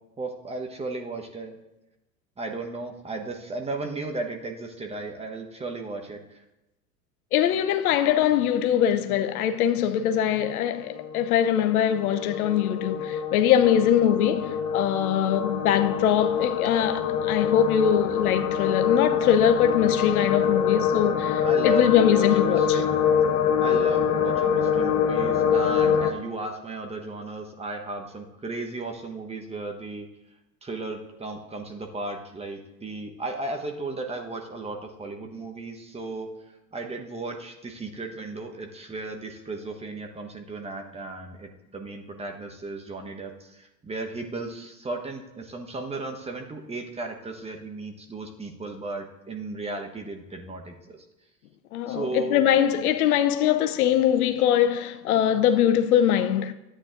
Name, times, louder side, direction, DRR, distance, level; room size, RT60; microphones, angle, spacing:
voice 1, 0.2-1.6 2.4-6.4 13.6-13.7 21.4-23.0 23.6-30.1 30.6-36.3 36.7-51.0 51.9-52.4, right 2 dB, 15° right, 1.1 m, -35 dB
voice 2, 7.3-22.8 51.7-56.5, left 10 dB, 65° left, 0.7 m, -22 dB
sound 1, 9.5-26.1, left 7 dB, 35° left, 0.9 m, -25 dB
13.0 x 8.7 x 2.5 m
figure-of-eight pair, 85°, 48 cm